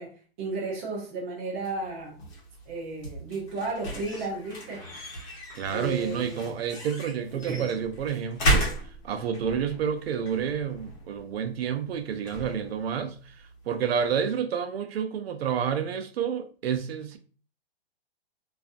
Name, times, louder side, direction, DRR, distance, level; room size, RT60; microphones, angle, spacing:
voice 1, 0.0-2.2 2.7-4.8 5.7-6.5 7.3-7.6, right 3 dB, 15° right, 0.3 m, -33 dB
sound 1, 1.6-14.3, right 1 dB, 45° left, 1.0 m, -35 dB
voice 2, 5.5-17.2, right 7 dB, 75° right, 0.5 m, -30 dB
2.5 x 2.4 x 2.4 m
hypercardioid pair, 160°, 31 cm